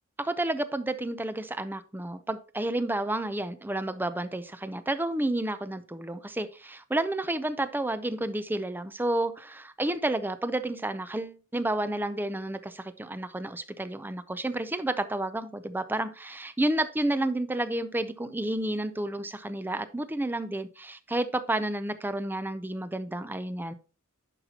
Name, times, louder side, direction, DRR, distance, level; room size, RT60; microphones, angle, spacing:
voice 1, 0.2-23.7, right 1 dB, 10° right, 12 dB, 0.5 m, -31 dB
11.0 x 5.8 x 2.8 m, 0.35 s
head